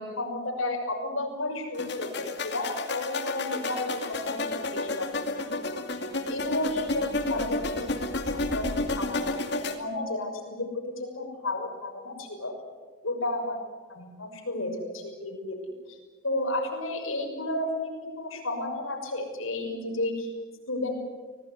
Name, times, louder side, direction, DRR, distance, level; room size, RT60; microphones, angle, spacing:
voice 1, 0.0-5.1 5.5-5.6 6.3-7.9 8.3-12.5 13.0-13.6 13.9-15.6 15.9-20.3 20.7-21.0, left 2 dB, 80° left, 3 dB, 6.3 m, -32 dB
sound 1, 1.7-9.7, left 2 dB, 55° left, 2.4 m, -31 dB
25.5 x 18.5 x 9.8 m, 1.3 s
head